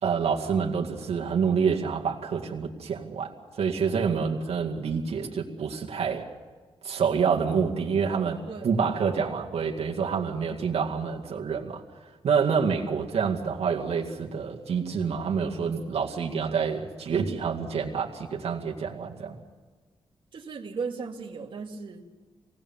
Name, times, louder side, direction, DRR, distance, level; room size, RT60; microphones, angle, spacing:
voice 1, 0.0-6.3 6.8-11.8 12.2-19.4, right 6 dB, 75° right, -1 dB, 2.1 m, -27 dB
voice 2, 8.5-8.8 20.3-22.0, right 5 dB, 50° right, -1 dB, 2.2 m, -36 dB
26.5 x 18.5 x 7.2 m, 1.4 s
wide cardioid pair, 170°, 11 cm